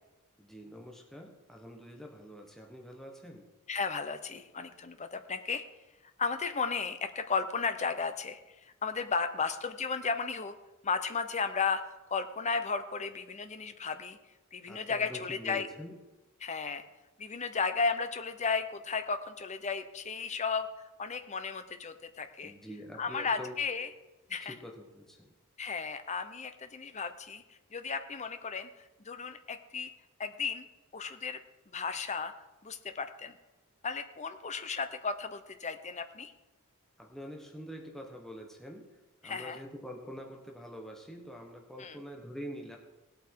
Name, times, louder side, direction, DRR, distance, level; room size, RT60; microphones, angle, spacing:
voice 1, 0.4-3.5 14.7-16.0 22.4-23.6 24.4-25.3 37.0-38.9 39.2-42.8, equal, ahead, 1 dB, 1.2 m, -45 dB
voice 2, 3.7-5.6 6.2-10.5 10.8-11.8 12.1-14.2 14.5-15.7 16.4-16.8 17.2-22.5 23.0-23.9 24.3-24.5 25.6-29.9 30.2-30.7 30.9-31.4 31.7-32.3 32.6-33.3 33.8-36.3 39.2-39.6 41.8-42.0, left 5 dB, 30° left, 9 dB, 0.8 m, -34 dB
17.5 x 8.4 x 4.7 m, 1.1 s
head